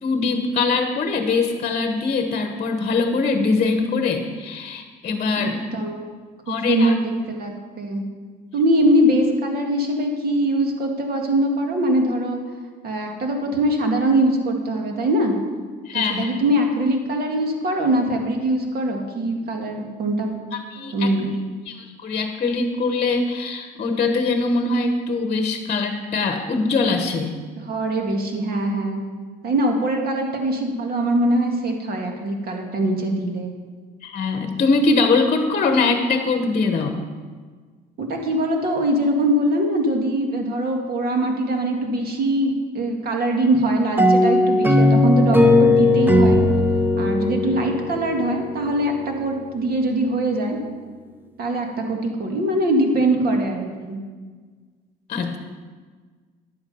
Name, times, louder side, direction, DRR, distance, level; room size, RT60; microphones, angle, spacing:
voice 1, 0.0-5.6 6.5-6.9 15.9-16.4 20.7-21.1 21.7-27.4 34.0-37.1 55.1-55.4, left 3 dB, 40° left, 6 dB, 1.1 m, -22 dB
voice 2, 5.4-6.0 6.5-8.0 8.5-12.4 12.8-15.4 15.9-20.4 20.9-21.3 27.6-29.0 29.4-33.5 38.0-46.4 47.0-50.6 51.4-54.0, right 1 dB, 55° right, 2 dB, 2.0 m, -22 dB
sound 1, 44.0-48.6, left 2 dB, 10° right, 0.9 m, -17 dB
10.5 x 8.0 x 5.6 m, 1.5 s
cardioid pair, 100°, 19 cm